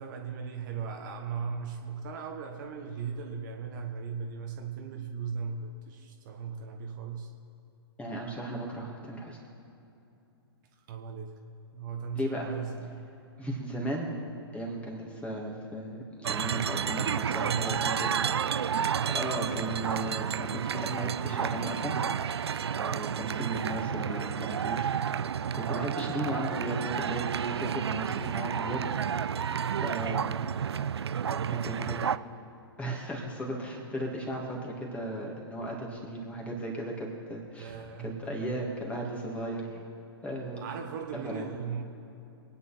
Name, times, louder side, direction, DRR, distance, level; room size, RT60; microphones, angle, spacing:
voice 1, 0.0-7.3 10.9-11.4 11.7-13.1 17.4-18.2 31.4-31.9 37.6-38.6 39.7-39.8 40.5-41.8, right 6 dB, 45° right, 3 dB, 1.5 m, -38 dB
voice 2, 8.0-9.4 12.1-12.5 13.4-14.1 14.5-18.0 19.1-21.9 22.6-25.2 25.5-28.8 29.1-29.4 29.8-30.3 31.3-32.0 32.8-37.7 38.0-39.7 40.2-40.6 41.2-41.5, right 1 dB, 10° left, -1 dB, 2.7 m, -36 dB
sound 1, 16.2-32.2, right 8 dB, 70° right, 0.4 m, -31 dB
24.5 x 9.6 x 4.4 m, 2.8 s
figure-of-eight pair, 115°, 14 cm